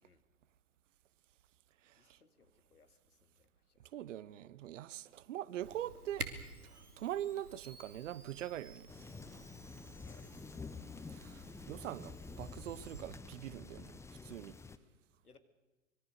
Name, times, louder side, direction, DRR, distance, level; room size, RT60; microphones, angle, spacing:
voice 1, 2.0-3.8 6.9-7.0 10.1-10.3 15.2-15.4, left 4 dB, 80° left, 2.3 m, -66 dB
voice 2, 3.9-6.3 6.6-8.9 11.1-14.6, right 12 dB, 55° right, 1.0 m, -43 dB
Camera, 5.6-13.0, right 3 dB, 80° right, 2.5 m, -50 dB
sound 1, 8.9-14.8, left 4 dB, 5° left, 0.9 m, -49 dB
25.0 x 22.5 x 6.6 m
figure-of-eight pair, 95°, 45 cm